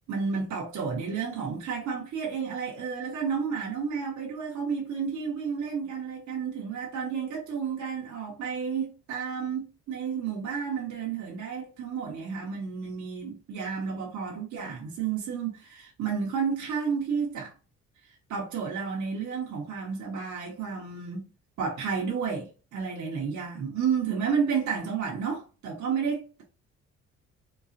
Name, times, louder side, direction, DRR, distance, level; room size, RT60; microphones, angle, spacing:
voice 1, 0.1-17.5 18.3-21.3 21.6-26.4, right 6 dB, 70° right, 1.4 m, -31 dB
4.6 x 2.4 x 2.7 m
cardioid pair, 90°, 30 cm